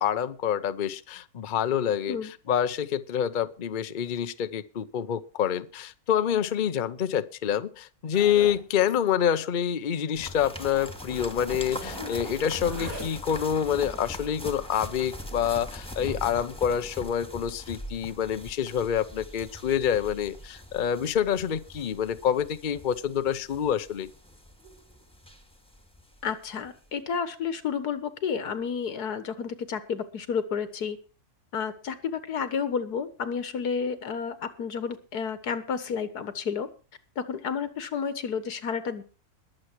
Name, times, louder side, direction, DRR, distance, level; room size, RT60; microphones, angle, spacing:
voice 1, 0.0-24.1, left 9 dB, 40° left, 12 dB, 0.7 m, -27 dB
Zipper (clothing), 8.1-8.6 8.9-9.1 9.4-9.5 9.8-9.9 10.7-10.8 11.1-13.4, left 1 dB, 65° right, 7.6 m, -41 dB
sound 1, 10.1-26.3 26.6-26.7, equal, 5° left, 2.1 m, -41 dB
voice 2, 26.2-31.0 31.5-36.7 37.2-39.0, left 6 dB, 90° left, 12 dB, 2.0 m, -31 dB
21.0 x 7.8 x 4.6 m, 0.35 s
omnidirectional pair, 1.6 m